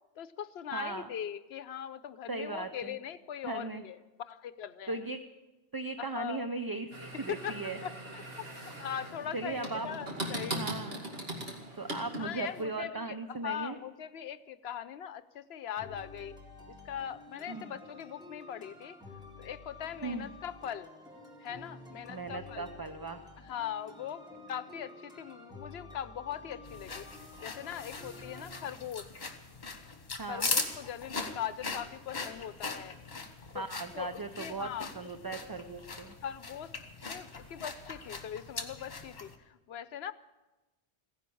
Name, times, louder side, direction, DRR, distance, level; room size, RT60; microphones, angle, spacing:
voice 1, 0.2-5.1 6.0-6.5 7.1-7.6 7.8-10.6 12.2-16.4 16.8-19.0 19.4-20.9 21.4-22.7 23.4-27.0 27.4-29.1 30.3-33.0 33.5-33.7 33.9-34.9 36.2-36.7 37.1-40.1, left 9 dB, 75° left, 15 dB, 0.9 m, -41 dB
voice 2, 0.7-1.1 2.3-3.0 3.4-3.8 4.9-5.2 5.7-7.8 9.3-9.9 10.5-11.1 11.8-13.8 17.5-17.7 20.0-20.3 22.1-23.2 30.2-30.5 33.5-36.2, right 3 dB, 25° right, 8 dB, 0.5 m, -38 dB
sound 1, 6.9-12.6, right 1 dB, 65° right, 2.5 m, -40 dB
sound 2, 15.8-28.7, left 2 dB, 5° right, 2.2 m, -50 dB
sound 3, 26.7-39.4, left 3 dB, 45° left, 1.5 m, -40 dB
16.0 x 11.0 x 8.5 m, 1.1 s
omnidirectional pair, 1.1 m